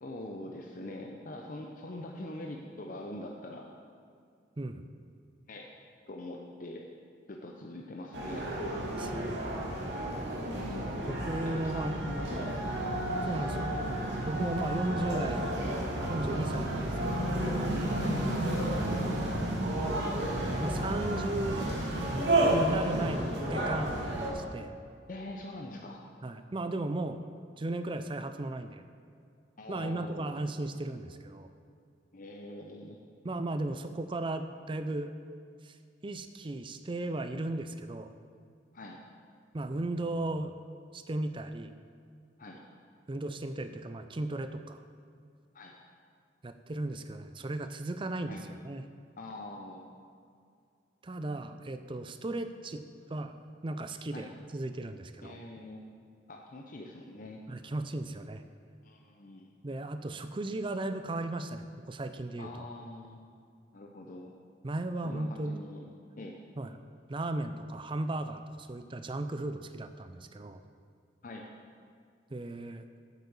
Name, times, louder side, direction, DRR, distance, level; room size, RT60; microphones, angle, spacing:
voice 1, 0.0-3.7 5.5-5.7 6.1-6.8 7.3-8.5 11.5-13.0 17.9-18.2 25.1-26.0 29.6-30.3 32.1-33.0 38.7-39.0 42.4-42.6 45.5-45.7 48.3-48.4 49.2-49.8 54.1-54.3 55.2-55.9 56.3-57.4 58.8-59.5 62.4-63.2 63.7-64.3 65.0-65.8 66.2-66.4 71.2-71.5, left 1 dB, 45° left, 1 dB, 0.8 m, -43 dB
sound 1, 8.1-24.3, right 1 dB, 65° right, 2.3 m, -31 dB
voice 2, 8.8-9.4 11.1-12.0 13.3-15.5 16.1-17.3 18.7-19.5 20.6-21.8 22.5-24.8 26.2-27.2 27.6-28.8 29.7-31.5 33.2-35.1 35.6-35.8 36.0-38.1 39.5-40.5 40.9-41.7 43.1-44.8 46.4-48.9 51.0-52.8 53.1-53.3 53.6-55.4 57.5-58.4 59.6-62.7 64.6-65.5 66.6-66.7 67.1-70.6 72.3-72.9, right 2 dB, 25° right, 9 dB, 0.5 m, -36 dB
8.4 x 8.2 x 7.1 m, 2.3 s
head